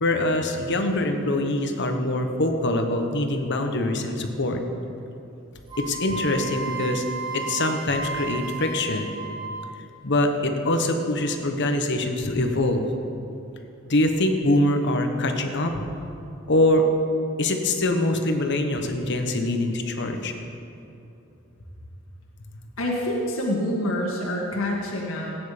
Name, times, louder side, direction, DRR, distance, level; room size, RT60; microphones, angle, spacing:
voice 1, 0.0-4.6 5.8-7.0 7.3-9.1 10.0-12.9 13.9-15.8 16.5-16.8 17.4-20.3, left 1 dB, 60° left, 5 dB, 1.2 m, -24 dB
Wind instrument woodwind instrument, 5.7-9.8, right 4 dB, 20° right, 1.9 m, -33 dB
voice 2, 22.8-25.4, left 1 dB, 90° left, -3 dB, 1.9 m, -26 dB
16.5 x 9.4 x 5.1 m, 2.7 s
head